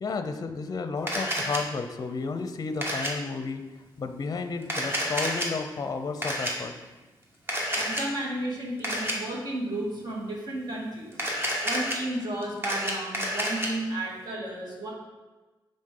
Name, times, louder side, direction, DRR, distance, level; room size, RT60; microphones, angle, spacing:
voice 1, 0.0-3.6 4.0-6.7, left 4 dB, 45° left, 8 dB, 0.5 m, -32 dB
Camera, 1.1-1.6 2.8-3.1 4.6-5.5 6.2-6.5 7.5-8.0 8.8-9.1 11.1-12.0 12.4-13.7, equal, 25° right, 1.3 m, -29 dB
voice 2, 7.7-11.2 11.6-14.9, right 1 dB, 50° right, -3 dB, 2.1 m, -33 dB
9.4 x 4.1 x 3.8 m, 1.2 s
cardioid pair, 100°, 9 cm